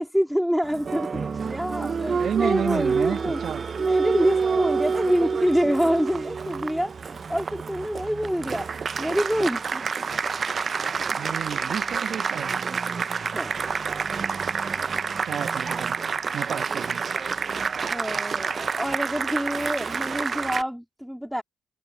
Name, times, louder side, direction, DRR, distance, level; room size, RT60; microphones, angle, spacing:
voice 1, 0.0-3.4 3.8-8.7 9.0-9.8 13.3-13.5 17.8-21.4, equal, ahead, 2.7 m, -26 dB
Applause, 0.6-20.6, right 5 dB, 40° right, 0.5 m, -28 dB
voice 2, 1.8-3.6 11.1-12.6 15.2-16.0 16.3-17.0, right 8 dB, 60° right, 1.5 m, -31 dB
cardioid pair, 90°, 0 cm